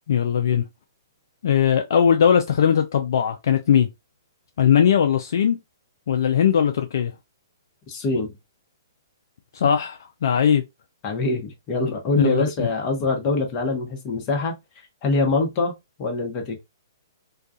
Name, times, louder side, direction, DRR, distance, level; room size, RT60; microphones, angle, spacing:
voice 1, 0.1-0.6 1.4-3.9 4.6-5.6 6.1-7.1 9.5-10.6 12.2-12.7, left 8 dB, 65° left, 0.3 m, -19 dB
voice 2, 7.9-8.3 11.0-14.5 15.0-15.7 16.0-16.6, left 3 dB, 35° left, 0.9 m, -24 dB
2.3 x 2.3 x 2.6 m
hypercardioid pair, 125°, 2 cm